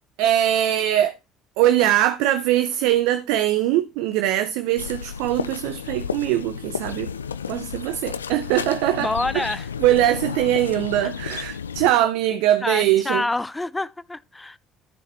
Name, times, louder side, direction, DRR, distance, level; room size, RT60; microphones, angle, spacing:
voice 1, 0.2-1.2 1.6-7.1 7.5-9.5 9.8-13.2, right 13 dB, 70° right, 0.6 m, -21 dB
sound 1, 4.8-11.9, left 7 dB, 90° left, 0.4 m, -32 dB
voice 2, 9.0-9.7 12.6-14.6, left 2 dB, 15° left, 0.5 m, -27 dB
14.0 x 6.6 x 3.1 m
hypercardioid pair, 55°, 0 cm